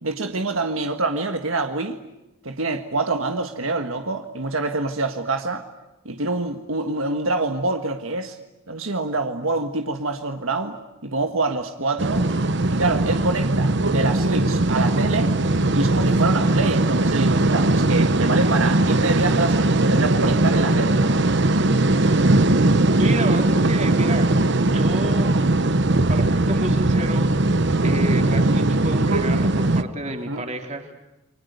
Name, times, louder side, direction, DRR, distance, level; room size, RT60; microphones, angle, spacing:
voice 1, 0.0-2.0 2.4-5.6 6.0-8.4 8.7-10.8 11.0-12.2 12.7-15.3 15.7-21.0 30.0-30.4, right 3 dB, 75° right, 6 dB, 1.6 m, -26 dB
sound 1, 12.0-29.8, right 2 dB, 55° right, 1.1 m, -19 dB
voice 2, 23.0-24.3 24.7-25.3 26.1-27.3 27.8-30.9, right 1 dB, 35° right, 4 dB, 3.6 m, -31 dB
29.5 x 24.5 x 8.2 m, 0.96 s
head